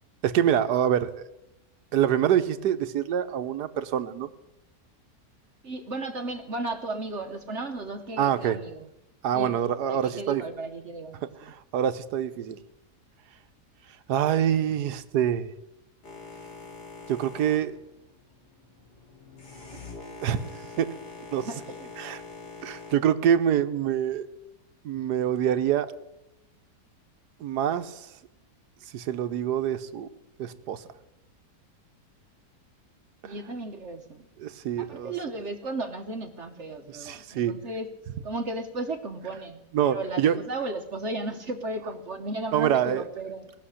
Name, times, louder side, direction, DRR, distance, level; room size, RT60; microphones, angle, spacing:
voice 1, 0.2-1.2 1.9-4.3 8.2-8.6 9.2-10.4 11.2-12.6 14.1-15.5 17.1-17.7 20.2-20.9 21.3-21.5 22.0-22.2 22.6-24.3 24.8-25.9 27.4-28.1 28.9-30.1 30.4-30.8 34.4-35.1 37.0-37.6 39.7-40.4 42.5-43.0, right 9 dB, 75° right, 11 dB, 1.4 m, -25 dB
voice 2, 5.6-8.9 9.3-9.6 9.8-11.5 21.4-21.9 33.2-34.3 34.8-37.9 38.2-43.5, right 2 dB, 50° right, 6 dB, 1.1 m, -35 dB
Boat Water vehicle, 16.0-23.0, left 4 dB, 85° left, 3.2 m, -44 dB
18.5 x 6.7 x 9.9 m, 0.95 s
omnidirectional pair, 1.8 m